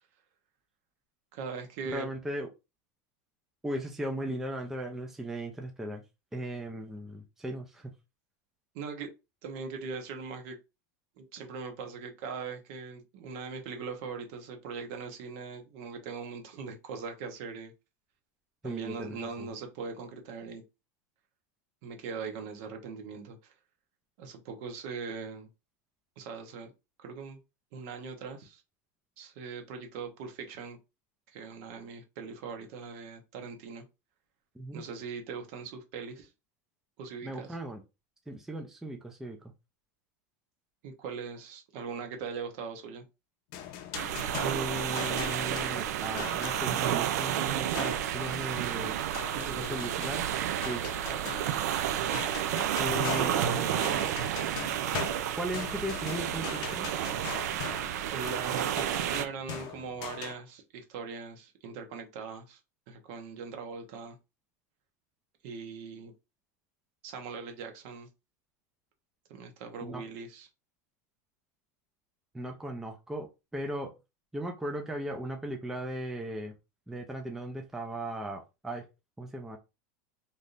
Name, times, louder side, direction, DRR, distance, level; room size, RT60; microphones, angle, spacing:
voice 1, 1.3-2.1 8.7-9.1 9.4-10.6 11.2-17.7 18.6-20.6 21.8-23.5 24.2-25.5 26.2-26.7 27.0-27.4 27.7-28.6 29.2-30.8 31.3-33.8 34.7-36.3 37.0-37.5 40.8-43.0 49.3-49.9 53.2-53.3 58.1-62.6 62.9-64.2 65.4-66.1 67.0-68.1 69.3-70.5, right 5 dB, 55° right, 0.9 m, -40 dB
voice 2, 1.9-2.5 3.6-6.0 6.3-7.9 18.6-19.5 34.6-34.8 37.2-37.8 38.3-39.4 44.4-49.0 49.6-50.3 50.6-50.8 52.8-54.0 55.4-56.9 69.8-70.0 72.3-73.9 74.3-76.5 76.9-78.8 79.2-79.6, right 1 dB, 5° right, 0.4 m, -37 dB
sound 1, 43.5-46.8 47.8-48.2 49.1-51.8 52.1-60.3, left 9 dB, 45° left, 0.6 m, -41 dB
sound 2, 43.9-59.3, right 10 dB, 80° right, 0.4 m, -31 dB
3.4 x 2.7 x 2.5 m
supercardioid pair, 145°, 9 cm